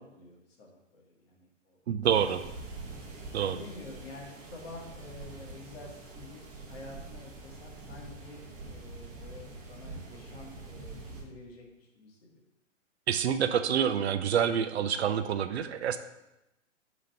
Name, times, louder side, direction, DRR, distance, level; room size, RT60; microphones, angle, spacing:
voice 1, 0.0-1.8 3.4-12.3, left 2 dB, 55° left, -2 dB, 1.8 m, -49 dB
voice 2, 1.9-2.4 3.3-3.6 13.1-16.0, right 8 dB, 60° right, 10 dB, 0.5 m, -27 dB
sound 1, 2.0-11.2, right 3 dB, 20° right, 1.0 m, -45 dB
5.0 x 4.0 x 5.7 m, 0.92 s
figure-of-eight pair, 115°, 38 cm